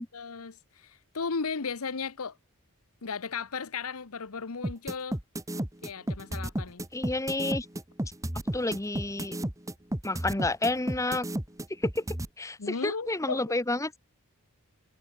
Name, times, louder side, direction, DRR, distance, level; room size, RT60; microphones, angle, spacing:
voice 1, 0.1-2.4 3.0-5.2 5.5-6.8 12.6-13.4, left 5 dB, 80° left, 1.0 m, -35 dB
sound 1, 4.6-12.3, right 1 dB, 15° right, 1.4 m, -32 dB
voice 2, 6.9-7.7 8.5-9.4 10.0-11.3 11.8-12.0 12.4-14.0, left 2 dB, 15° left, 1.0 m, -30 dB
head